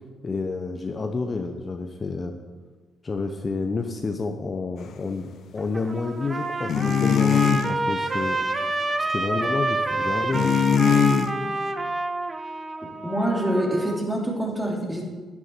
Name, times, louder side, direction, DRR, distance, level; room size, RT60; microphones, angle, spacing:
voice 1, 0.2-2.3 3.0-8.4 9.1-10.5, left 3 dB, 35° left, 4 dB, 0.8 m, -29 dB
Trumpet, 5.6-14.0, right 2 dB, 25° right, 0.8 m, -28 dB
sound 1, 6.7-7.7 10.3-11.3, left 7 dB, 65° left, 0.7 m, -20 dB
voice 2, 13.0-15.1, right 1 dB, 5° right, -1 dB, 2.7 m, -26 dB
10.5 x 9.9 x 4.5 m, 1.4 s
cardioid pair, 90°, 0 cm